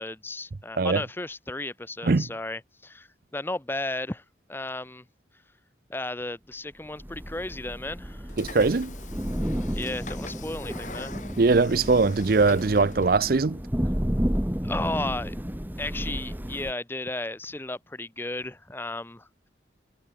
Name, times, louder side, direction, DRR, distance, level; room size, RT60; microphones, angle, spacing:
voice 1, 0.0-4.2 4.5-5.0 5.9-8.2 9.7-11.1 14.6-15.4 15.8-19.3, left 2 dB, 10° left, 0.7 m, -34 dB
Thunder / Rain, 7.0-16.7, equal, 10° right, 1.5 m, -32 dB
Train / Sliding door, 8.3-13.3, left 3 dB, 40° left, 8.0 m, -43 dB
voice 2, 8.4-8.9 11.4-13.6, right 3 dB, 50° right, 0.6 m, -21 dB
head